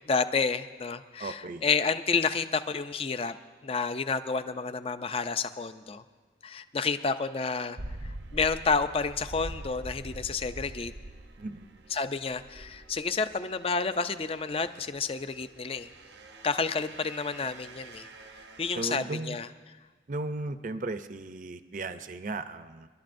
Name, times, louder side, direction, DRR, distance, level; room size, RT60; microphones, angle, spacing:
voice 1, 0.1-3.3 3.6-6.0 6.4-7.8 8.3-10.9 11.9-15.9 16.4-18.1 18.6-19.5, left 4 dB, 30° left, 11 dB, 0.5 m, -30 dB
voice 2, 1.2-1.6 11.4-11.7 18.8-19.4 20.1-22.9, right 2 dB, 45° right, 10 dB, 0.6 m, -36 dB
sound 1, 7.8-18.9, right 1 dB, 85° right, 0.9 m, -45 dB
29.0 x 11.5 x 2.6 m, 1.4 s
head